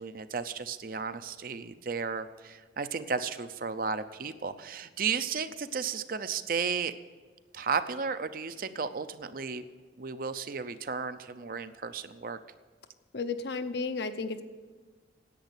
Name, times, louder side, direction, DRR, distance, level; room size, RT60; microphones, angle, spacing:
voice 1, 0.0-6.9 7.5-9.6 10.0-12.4, right 5 dB, 50° right, 11 dB, 0.5 m, -34 dB
voice 2, 13.1-14.4, left 4 dB, 70° left, 9 dB, 0.8 m, -33 dB
10.5 x 8.2 x 8.0 m, 1.4 s
head